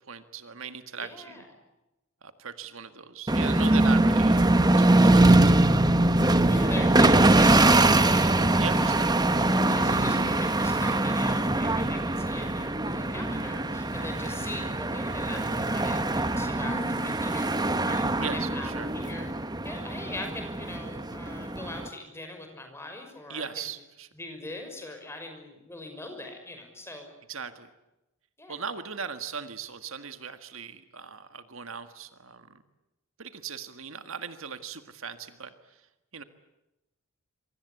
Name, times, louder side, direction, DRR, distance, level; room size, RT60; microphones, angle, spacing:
voice 1, 0.1-1.4 2.2-5.6 8.6-9.1 14.6-14.7 18.2-18.9 23.3-24.1 27.3-27.7 28.5-32.6 33.2-35.5 36.1-36.2, right 6 dB, 65° right, 9 dB, 1.7 m, -38 dB
voice 2, 1.0-1.5 6.5-8.4 8.7-9.1 9.7-19.3 19.6-23.7 24.1-27.1 28.4-28.5, left 2 dB, 10° left, 4 dB, 6.0 m, -41 dB
sound 1, 3.3-21.9, right 2 dB, 20° right, 1.1 m, -23 dB
26.5 x 24.5 x 8.4 m, 0.97 s
head